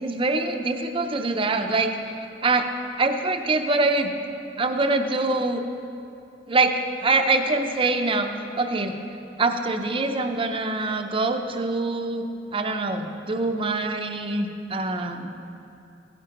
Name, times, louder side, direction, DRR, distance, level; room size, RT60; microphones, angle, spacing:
voice 1, 0.0-2.7 3.0-4.1 4.6-5.6 6.5-6.7 7.0-9.0 9.4-15.4, right 3 dB, 30° right, 5 dB, 0.6 m, -24 dB
16.0 x 9.6 x 3.0 m, 2.7 s
head